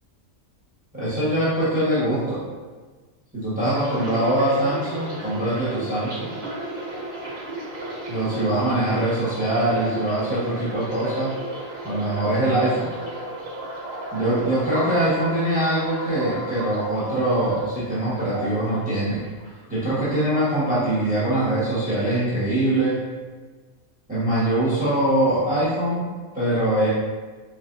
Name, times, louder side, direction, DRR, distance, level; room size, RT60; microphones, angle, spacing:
voice 1, 0.9-2.4 3.3-6.3 8.1-11.3 11.8-12.9 14.1-19.2 19.7-23.0 24.1-26.9, right 1 dB, 5° right, -11 dB, 1.2 m, -23 dB
sound 1, 3.7-19.7 20.0-20.9 21.2-21.5, right 1 dB, 75° right, 1.4 m, -35 dB
5.1 x 3.3 x 2.6 m, 1.4 s
omnidirectional pair, 1.3 m